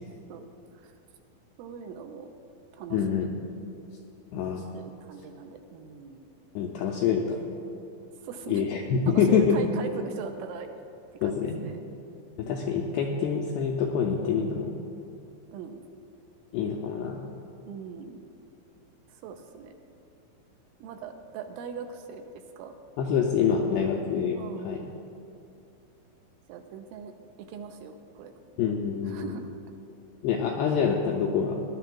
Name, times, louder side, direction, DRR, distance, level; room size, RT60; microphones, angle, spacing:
voice 1, 1.6-2.3 2.8-3.3 4.7-6.2 8.2-8.7 9.1-10.7 11.2-11.8 15.5-15.8 17.6-18.2 19.1-19.7 20.8-22.3 22.6-22.7 23.6-24.1 24.3-24.7 26.5-27.1 27.5-28.3 29.1-29.5, right 6 dB, 85° right, 5 dB, 3.0 m, -40 dB
voice 2, 2.9-3.3 4.3-4.7 6.6-7.4 8.5-9.6 11.2-11.6 12.4-14.7 16.5-17.2 23.0-24.4 24.6-24.8 28.6-29.3 30.2-31.6, left 6 dB, 85° left, -1 dB, 2.4 m, -26 dB
21.0 x 11.5 x 2.3 m, 2.6 s
omnidirectional pair, 5.6 m